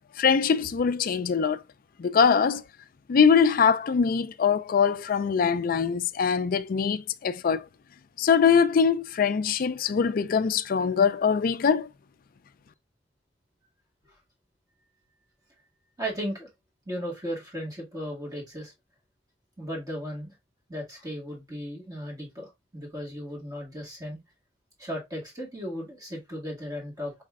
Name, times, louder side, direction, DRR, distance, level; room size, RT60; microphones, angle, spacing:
voice 1, 0.2-1.6 2.0-2.6 3.1-7.6 8.2-11.9, left 6 dB, 50° left, 0.4 m, -23 dB
voice 2, 16.0-16.5 16.9-18.7 19.6-20.3 20.7-24.2 24.8-27.1, equal, 20° right, 1.9 m, -36 dB
4.8 x 4.2 x 2.3 m
head